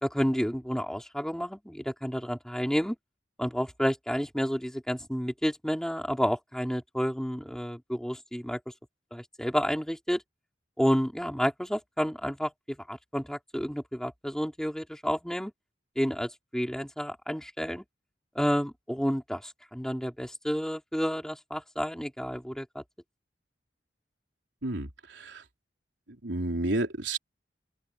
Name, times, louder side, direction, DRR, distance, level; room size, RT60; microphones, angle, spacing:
voice 1, 0.0-3.0 3.4-8.6 9.1-10.2 10.8-15.5 16.0-17.8 18.3-22.8, equal, 5° left, 3.8 m, -30 dB
voice 2, 24.6-25.4 26.2-27.2, right 2 dB, 90° right, 3.7 m, -31 dB
open air
head